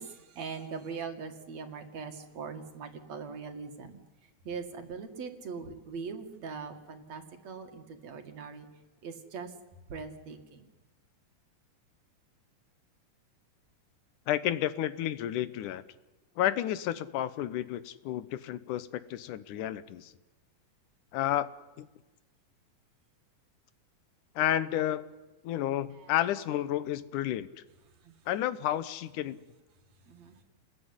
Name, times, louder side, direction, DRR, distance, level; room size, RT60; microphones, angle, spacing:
voice 1, 0.0-4.0 4.4-8.7 9.0-9.5 9.9-10.7 25.9-26.1 28.0-28.1 30.1-30.4, right 5 dB, 60° right, 6 dB, 3.3 m, -41 dB
voice 2, 14.3-15.8 16.4-20.1 21.1-21.5 21.8-21.9 24.4-25.0 25.4-27.5 28.3-29.4, left 12 dB, 85° left, 16 dB, 2.5 m, -31 dB
28.5 x 20.5 x 9.8 m, 1.2 s
omnidirectional pair, 3.5 m